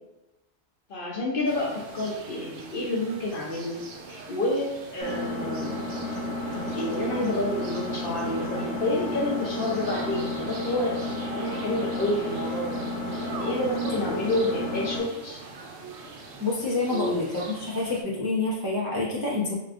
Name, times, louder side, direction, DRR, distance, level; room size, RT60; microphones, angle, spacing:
voice 1, 0.9-3.8 4.1-5.8 6.7-11.0 11.3-12.8 13.3-15.4 16.9-17.3, left 1 dB, 55° left, -2 dB, 0.7 m, -29 dB
sound 1, 1.5-18.0, right 3 dB, 65° right, 0.8 m, -43 dB
Engine, 5.0-15.0, left 1 dB, 85° right, 1.3 m, -32 dB
voice 2, 16.4-19.5, left 2 dB, 30° right, -7 dB, 0.4 m, -28 dB
4.7 x 2.2 x 2.5 m, 0.97 s
omnidirectional pair, 1.3 m